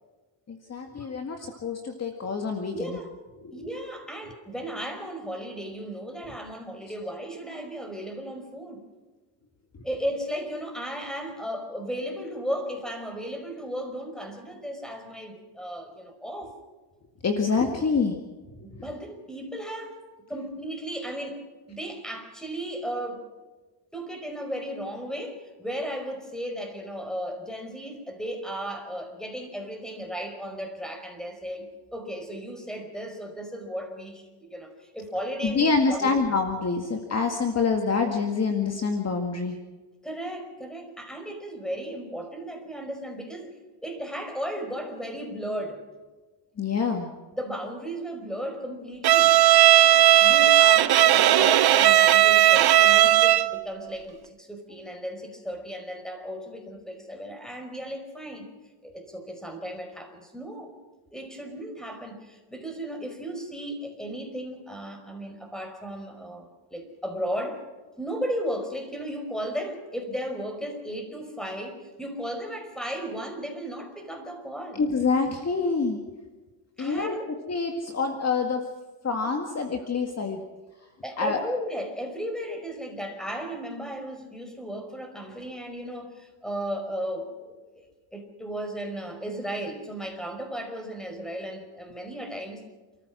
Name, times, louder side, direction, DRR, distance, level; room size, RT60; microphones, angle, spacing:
voice 1, 0.5-3.0 3.4-3.7 9.7-9.8 17.2-18.2 18.7-18.8 35.4-39.6 46.6-47.1 74.8-76.0 76.8-77.2 77.5-78.6 79.0-80.4 81.2-81.4, left 4 dB, 35° left, 4 dB, 2.0 m, -26 dB
voice 2, 2.7-3.1 3.5-8.8 9.8-16.5 18.6-20.0 20.3-23.3 23.9-36.2 40.0-43.5 43.8-45.8 47.3-49.4 50.2-58.5 58.8-60.7 61.1-67.6 68.0-74.8 76.8-77.3 81.0-87.5 88.1-92.6, equal, ahead, 5 dB, 5.1 m, -35 dB
Bowed string instrument, 49.0-53.6, right 13 dB, 55° right, 0.9 m, -17 dB
29.5 x 14.5 x 6.3 m, 1.3 s
cardioid pair, 110°, 45 cm